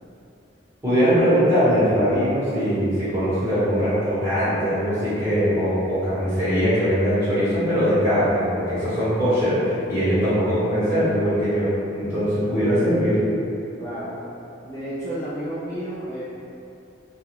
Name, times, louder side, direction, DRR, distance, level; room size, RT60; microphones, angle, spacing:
voice 1, 0.8-13.2, equal, 15° right, -14 dB, 1.0 m, -21 dB
voice 2, 13.8-14.2 14.6-16.2, right 1 dB, 15° left, -14 dB, 0.4 m, -31 dB
2.4 x 2.2 x 2.9 m, 2.7 s
head